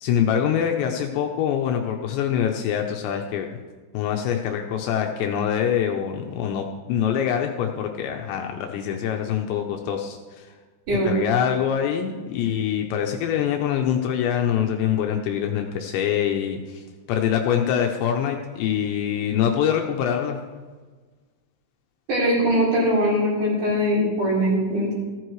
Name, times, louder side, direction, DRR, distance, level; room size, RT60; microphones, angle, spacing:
voice 1, 0.0-3.5 3.9-10.5 11.0-20.4, left 9 dB, 80° left, 3 dB, 2.8 m, -24 dB
voice 2, 10.9-11.2 22.1-24.9, equal, 45° right, -6 dB, 5.3 m, -21 dB
15.0 x 14.0 x 3.2 m, 1.4 s
omnidirectional pair, 5.5 m